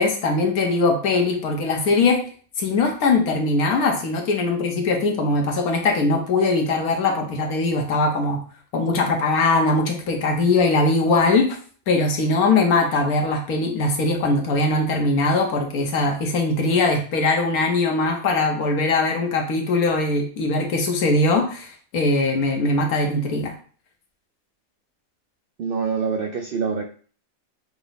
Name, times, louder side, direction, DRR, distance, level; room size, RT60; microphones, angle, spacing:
voice 1, 0.0-2.2 2.6-8.4 8.7-11.6 11.9-23.5, left 3 dB, 85° left, 2 dB, 1.4 m, -21 dB
voice 2, 25.6-26.8, right 5 dB, 75° right, 3 dB, 0.5 m, -25 dB
5.8 x 2.1 x 4.0 m, 0.43 s
omnidirectional pair, 1.5 m